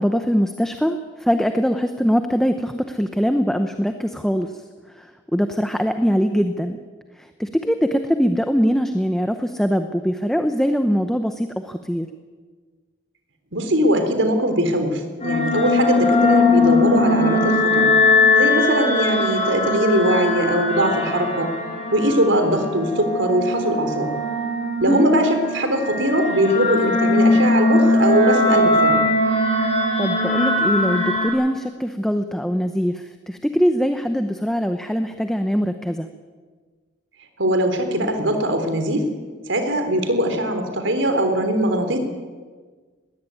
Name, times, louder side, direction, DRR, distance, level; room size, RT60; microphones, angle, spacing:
voice 1, 0.0-4.5 5.0-6.8 7.2-12.1 24.8-25.1 30.0-36.1, equal, ahead, 7 dB, 0.8 m, -22 dB
voice 2, 13.5-17.9 18.3-21.5 21.9-24.1 24.8-29.0 37.4-39.1 39.5-42.0, equal, 80° right, 7 dB, 3.8 m, -21 dB
sound 1, 15.2-31.3, left 2 dB, 35° left, 4.7 m, -20 dB
20.5 x 16.0 x 9.5 m, 1.5 s
head